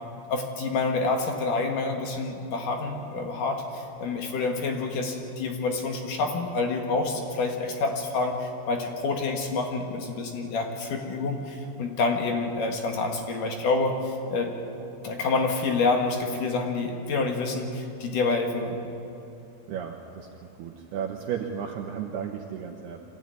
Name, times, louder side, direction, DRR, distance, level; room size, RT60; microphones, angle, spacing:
voice 1, 0.3-14.5 15.0-18.8, left 3 dB, 60° left, 3 dB, 2.5 m, -28 dB
voice 2, 19.7-23.0, right 8 dB, 70° right, 2 dB, 2.6 m, -34 dB
24.5 x 15.5 x 9.5 m, 2.8 s
omnidirectional pair, 5.6 m